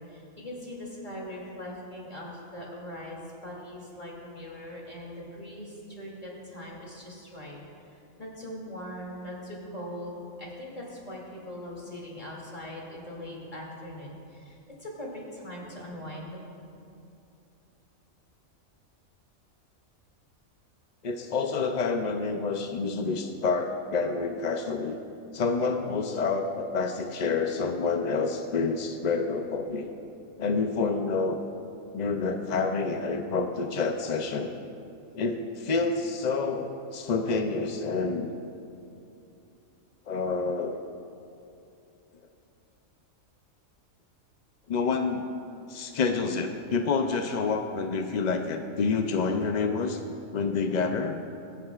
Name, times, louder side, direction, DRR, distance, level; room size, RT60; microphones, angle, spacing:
voice 1, 0.0-16.4, left 1 dB, 25° left, -4 dB, 2.6 m, -41 dB
voice 2, 21.0-25.0 25.3-29.9 30.4-31.4 31.9-34.5 35.1-38.3 40.1-40.8 44.7-45.3 45.7-50.0 50.3-51.2, left 4 dB, 65° left, 5 dB, 0.4 m, -28 dB
22.5 x 9.2 x 2.4 m, 2.6 s
omnidirectional pair, 1.4 m